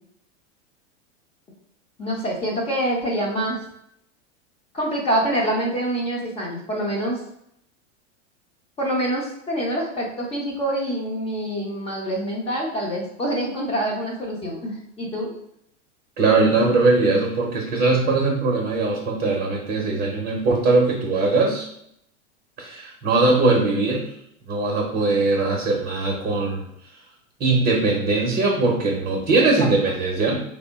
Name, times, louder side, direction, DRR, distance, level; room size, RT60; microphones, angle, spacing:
voice 1, 2.0-3.6 4.7-7.2 8.8-15.3 29.6-29.7, right 1 dB, 15° left, -2 dB, 0.6 m, -26 dB
voice 2, 16.2-21.7 22.6-24.0 24.5-26.7 27.4-30.4, right 3 dB, 25° right, -2 dB, 0.7 m, -20 dB
3.5 x 2.1 x 3.4 m, 0.74 s
supercardioid pair, 140°, 37 cm